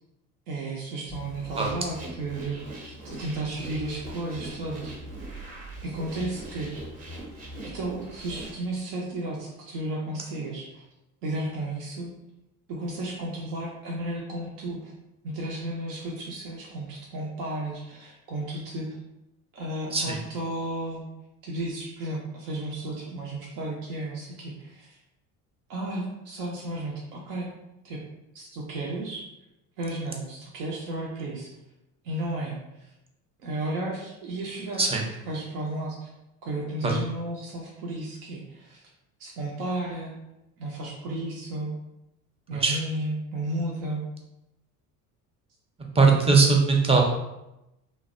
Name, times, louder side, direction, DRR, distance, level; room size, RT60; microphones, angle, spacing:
voice 1, 0.5-4.9 5.8-6.7 7.7-10.8 11.2-12.1 12.7-14.9 15.2-19.0 19.5-21.0 21.4-25.0 25.7-27.5 27.8-28.0 28.3-29.2 29.8-31.5 32.0-32.9 33.4-34.8 35.3-36.1 36.4-38.8 39.2-40.2 40.6-41.7 42.5-44.0, right 1 dB, 75° right, -2 dB, 0.7 m, -33 dB
sound 1, 1.1-8.5, right 1 dB, 30° right, 0.7 m, -41 dB
voice 2, 45.9-47.0, right 4 dB, 15° right, 0 dB, 0.4 m, -20 dB
2.5 x 2.0 x 2.5 m, 0.91 s
hypercardioid pair, 65°, 47 cm